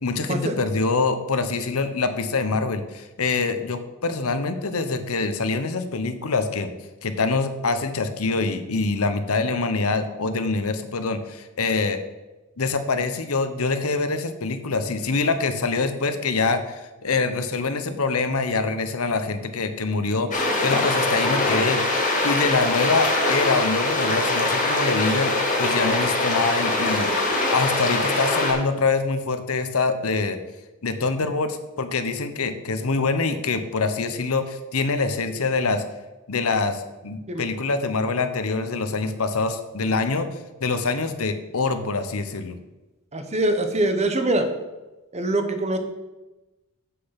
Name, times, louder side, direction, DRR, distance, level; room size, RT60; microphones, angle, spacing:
voice 1, 0.0-6.7 7.0-12.0 12.6-21.8 22.2-27.1 27.5-30.4 30.8-35.8 36.3-40.3 40.6-42.6, left 3 dB, 75° left, 9 dB, 0.9 m, -25 dB
sound 1, 20.3-28.5, left 2 dB, 35° left, 2.4 m, -23 dB
voice 2, 43.1-44.5 45.1-45.8, right 1 dB, 30° right, 7 dB, 1.0 m, -23 dB
7.7 x 6.8 x 5.8 m, 1.1 s
head